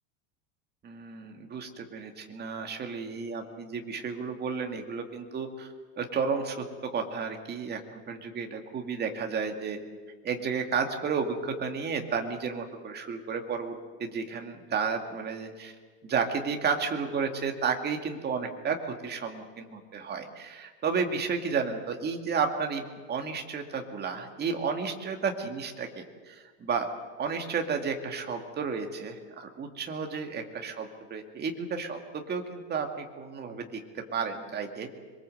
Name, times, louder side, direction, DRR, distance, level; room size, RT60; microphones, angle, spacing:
voice 1, 0.8-5.7 6.0-9.8 10.2-15.7 16.0-26.9 27.2-35.0, right 5 dB, 20° right, 4 dB, 2.2 m, -32 dB
26.0 x 22.5 x 7.8 m, 1.4 s
supercardioid pair, 165°, 45 cm